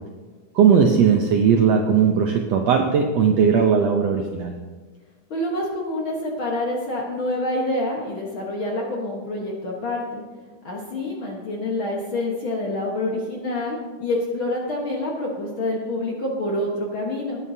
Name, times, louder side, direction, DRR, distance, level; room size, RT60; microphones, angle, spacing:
voice 1, 0.5-4.5, right 6 dB, 75° right, 3 dB, 1.5 m, -18 dB
voice 2, 5.3-10.2 10.6-17.4, left 1 dB, 55° left, -2 dB, 1.5 m, -27 dB
19.0 x 9.2 x 2.8 m, 1.4 s
omnidirectional pair, 3.8 m